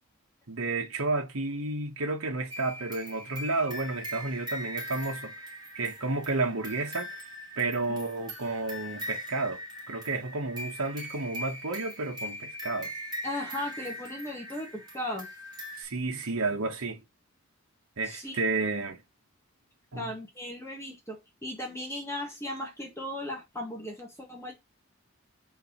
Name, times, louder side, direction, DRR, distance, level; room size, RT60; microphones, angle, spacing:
voice 1, 0.5-5.3 5.7-7.2 7.6-9.6 9.9-12.9 15.8-17.0 18.0-19.0 19.9-20.1, right 3 dB, 75° right, 1.2 m, -31 dB
sound 1, 2.5-15.8, equal, 20° right, 3.2 m, -41 dB
voice 2, 13.2-15.3 18.0-18.4 19.9-24.5, left 1 dB, 10° left, 1.8 m, -37 dB
4.6 x 4.0 x 5.7 m
head